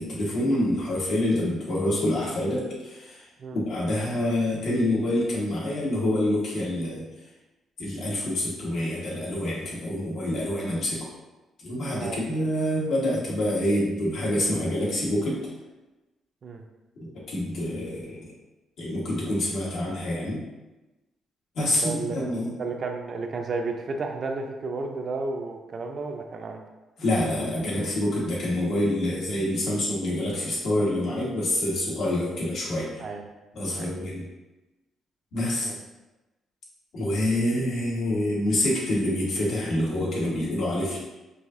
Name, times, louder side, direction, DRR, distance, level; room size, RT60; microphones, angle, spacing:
voice 1, 0.0-3.3 3.5-7.1 7.8-11.1 11.6-15.4 17.0-18.3 18.8-20.4 21.5-22.6 27.0-33.0 33.5-34.3 35.3-35.7 36.9-41.0, left 1 dB, 70° left, -6 dB, 1.4 m, -27 dB
voice 2, 21.8-22.2 22.6-26.6 33.0-33.2 33.7-33.9 35.6-35.8, right 3 dB, 50° right, 3 dB, 0.5 m, -32 dB
4.8 x 2.7 x 2.6 m, 1.1 s
cardioid pair, 90°, 0 cm